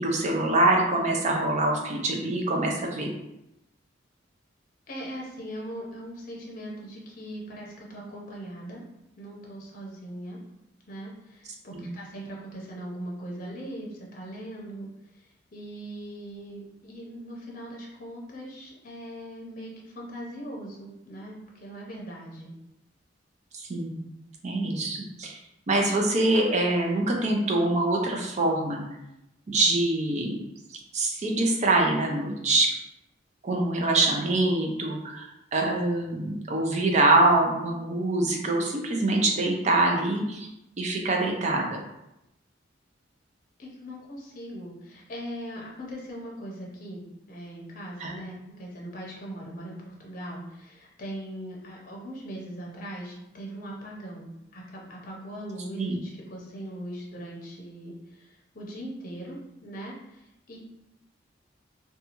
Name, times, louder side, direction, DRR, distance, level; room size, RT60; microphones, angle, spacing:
voice 1, 0.0-3.1 11.7-11.9 23.5-24.1 24.4-25.4 25.7-28.8 29.5-30.4 30.9-32.7 33.4-40.5 40.8-41.8 48.0-48.1 55.8-56.0, right 2 dB, 35° right, 1 dB, 0.5 m, -24 dB
voice 2, 4.9-8.8 9.2-10.4 10.9-14.9 15.1-22.5 43.6-60.6, right 1 dB, 45° left, -3 dB, 0.6 m, -40 dB
2.7 x 2.3 x 2.9 m, 0.89 s
head